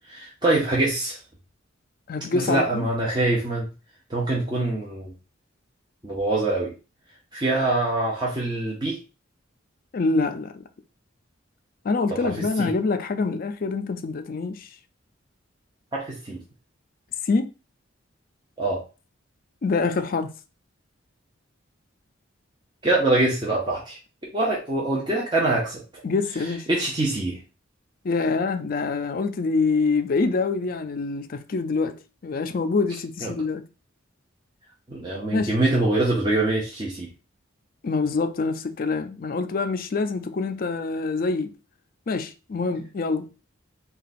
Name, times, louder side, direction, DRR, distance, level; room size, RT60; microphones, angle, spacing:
voice 1, 0.1-1.2 2.3-3.7 4.1-5.1 6.0-6.7 7.3-9.0 12.2-12.3 12.6-12.7 15.9-16.4 18.6-18.8 22.8-24.0 24.3-25.8 26.7-27.4 33.2-33.3 34.9-37.1, right 2 dB, 20° right, 0.8 m, -24 dB
voice 2, 2.1-2.9 9.9-10.6 11.8-14.7 17.2-17.5 19.6-20.3 26.0-26.7 28.0-33.6 35.3-35.5 37.8-41.5 42.1-43.4, left 4 dB, 45° left, 0.4 m, -25 dB
3.9 x 2.3 x 4.1 m
head